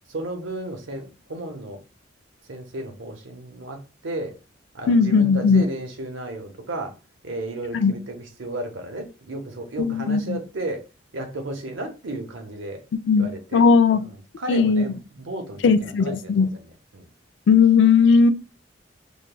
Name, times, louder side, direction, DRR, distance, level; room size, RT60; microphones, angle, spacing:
voice 1, 0.1-1.8 2.5-4.4 4.7-6.9 7.2-10.9 11.1-12.8 13.2-13.6 13.9-16.6 16.9-17.1, right 1 dB, 85° right, 0.9 m, -33 dB
voice 2, 4.9-5.6 7.8-7.9 9.8-10.4 13.1-13.3 13.5-14.0 14.5-14.8 15.6-16.5 17.5-18.3, left 5 dB, 70° left, 0.3 m, -17 dB
5.1 x 2.3 x 2.2 m
head